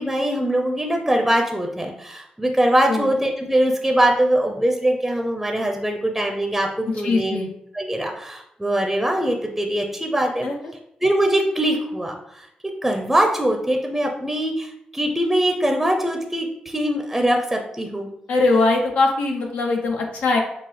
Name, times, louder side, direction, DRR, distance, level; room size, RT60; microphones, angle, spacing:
voice 1, 0.0-7.4 7.7-10.5 11.0-12.5 12.8-18.1, right 1 dB, 5° right, 3 dB, 0.6 m, -22 dB
voice 2, 7.0-7.5 10.4-10.5 18.3-20.4, left 3 dB, 85° left, 1 dB, 0.8 m, -21 dB
5.9 x 2.0 x 3.2 m, 0.78 s
cardioid pair, 65°, 3 cm